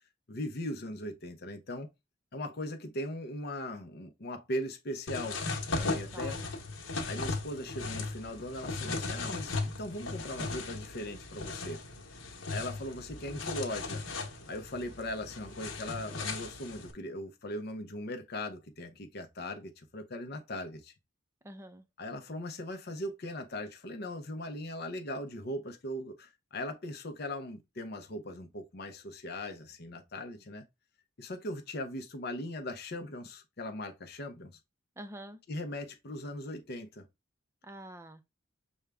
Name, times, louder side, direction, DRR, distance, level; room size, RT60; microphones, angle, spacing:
voice 1, 0.3-1.9 2.3-5.4 5.7-6.5 7.1-11.8 12.5-14.0 14.5-20.9 22.0-30.6 31.2-34.6 35.5-37.1, left 1 dB, 50° left, 0.7 m, -39 dB
sound 1, 5.1-16.9, left 3 dB, 65° left, 1.1 m, -37 dB
voice 2, 6.1-6.5 21.4-21.8 35.0-35.4 37.6-38.2, right 1 dB, 15° right, 0.5 m, -46 dB
6.2 x 2.2 x 3.4 m
head